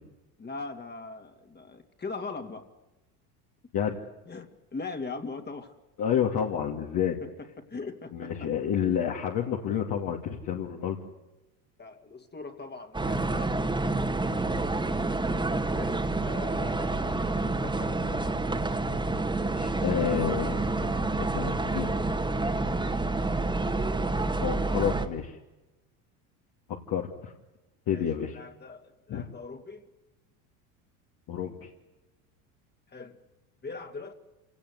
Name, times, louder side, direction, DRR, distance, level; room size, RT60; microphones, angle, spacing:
voice 1, 0.4-2.6 4.3-5.7 7.0-8.5 11.8-13.6 14.3-14.5 15.7-18.3 27.9-29.9 32.9-33.2 33.6-34.1, left 4 dB, 25° left, 5 dB, 2.7 m, -41 dB
voice 2, 6.0-7.2 8.1-11.0 19.4-21.0 21.3-21.9 24.4-25.4 26.9-27.3 27.9-28.4 29.1-29.2 31.3-31.7, left 8 dB, 50° left, 0 dB, 2.8 m, -29 dB
sound 1, 12.9-25.1, right 2 dB, 10° right, 2.2 m, -28 dB
27.5 x 18.0 x 8.2 m, 1.1 s
supercardioid pair, 95°, 44 cm